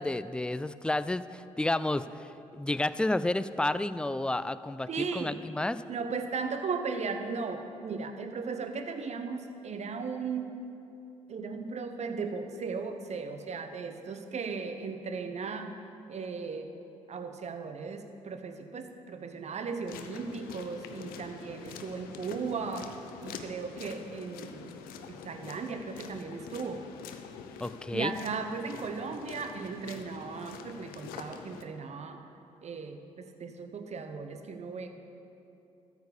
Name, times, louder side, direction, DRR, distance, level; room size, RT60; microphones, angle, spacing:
voice 1, 0.0-2.3 2.5-5.8 27.6-28.2, left 2 dB, 5° left, 15 dB, 0.3 m, -31 dB
voice 2, 4.9-5.4 5.9-10.6 11.3-15.8 16.1-16.7 17.1-23.0 23.2-24.7 25.1-26.8 27.9-32.2 32.6-34.9, right 5 dB, 45° right, 7 dB, 0.9 m, -36 dB
sound 1, 19.9-31.6, left 6 dB, 65° left, 0.6 m, -45 dB
13.0 x 4.9 x 6.8 m, 2.8 s
hypercardioid pair, 45°, 16 cm